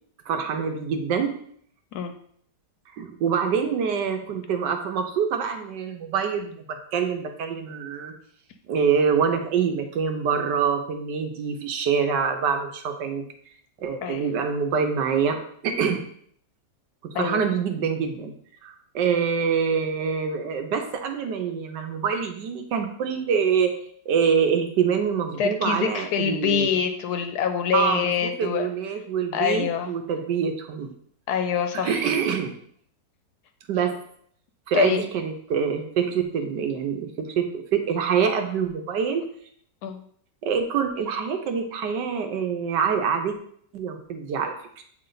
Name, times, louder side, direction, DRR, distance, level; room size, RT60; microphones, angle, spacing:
voice 1, 0.3-1.4 3.0-8.1 8.7-13.2 13.8-16.1 17.0-18.3 18.6-23.8 24.1-26.7 27.7-30.9 31.7-32.6 33.7-34.0 34.7-39.2 40.4-43.4 43.7-44.5, right 6 dB, 80° right, 5 dB, 1.4 m, -25 dB
voice 2, 25.4-28.7 29.3-29.9 31.3-32.1 34.7-35.0 39.8-40.0, left 7 dB, 70° left, 7 dB, 1.1 m, -25 dB
7.8 x 3.3 x 3.9 m, 0.62 s
omnidirectional pair, 1.9 m